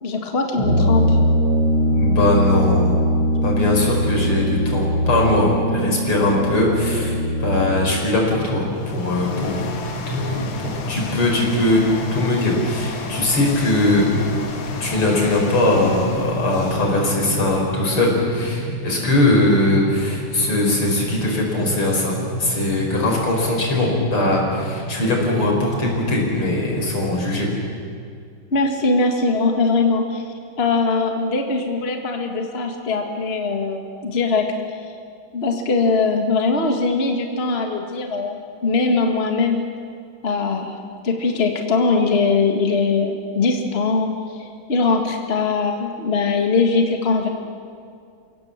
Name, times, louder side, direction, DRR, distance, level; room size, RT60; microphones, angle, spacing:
voice 1, 0.0-1.2 28.5-30.3 30.6-34.5 35.3-39.6 40.2-40.8 41.0-47.3, left 4 dB, 30° left, 3 dB, 1.9 m, -21 dB
Brass instrument, 0.5-8.0, equal, 55° right, 6.2 m, -20 dB
voice 2, 1.9-3.0 3.4-9.7 10.1-11.8 12.1-14.1 14.8-27.5, left 2 dB, 80° left, 0 dB, 5.7 m, -20 dB
sound 1, 8.1-27.7, equal, 10° left, 6.0 m, -32 dB
sound 2, 8.5-17.7, left 5 dB, 65° left, 2.2 m, -33 dB
29.5 x 17.5 x 7.4 m, 2.3 s
omnidirectional pair, 2.4 m